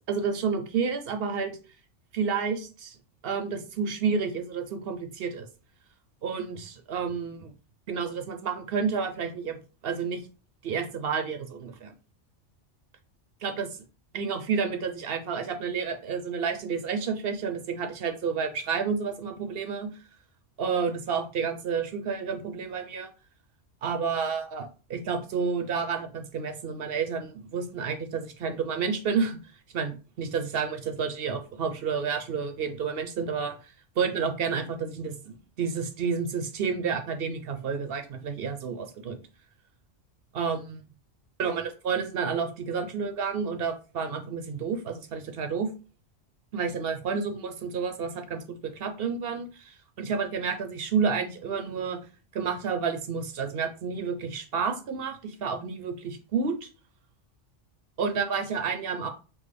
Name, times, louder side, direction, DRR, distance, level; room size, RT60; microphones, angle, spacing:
voice 1, 0.1-1.6 2.1-3.0 3.2-5.5 6.2-7.5 7.9-9.6 9.8-10.2 10.6-11.9 13.4-13.7 14.1-19.9 20.6-23.1 23.8-29.4 29.7-39.2 40.3-40.8 41.4-45.7 46.5-48.4 48.7-52.0 52.3-56.7 58.0-59.1, right 5 dB, 60° right, 7 dB, 0.8 m, -30 dB
6.2 x 2.1 x 3.3 m, 0.34 s
omnidirectional pair, 1.2 m